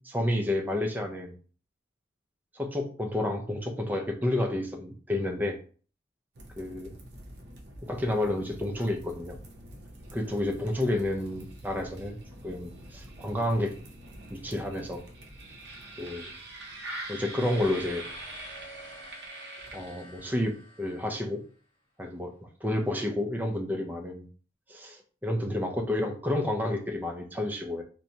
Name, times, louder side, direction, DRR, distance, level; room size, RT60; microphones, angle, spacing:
voice 1, 0.0-1.3 2.5-5.6 6.6-6.9 7.9-9.4 10.1-12.2 12.4-13.7 14.3-15.0 16.0-16.3 17.1-18.0 19.7-21.4 22.0-24.3 24.7-27.8, left 1 dB, 10° right, 2 dB, 0.4 m, -30 dB
sound 1, 6.4-20.3, right 1 dB, 55° right, 0.6 m, -45 dB
sound 2, 17.4-21.6, equal, 10° left, 1.1 m, -49 dB
2.8 x 2.1 x 2.7 m, 0.40 s
head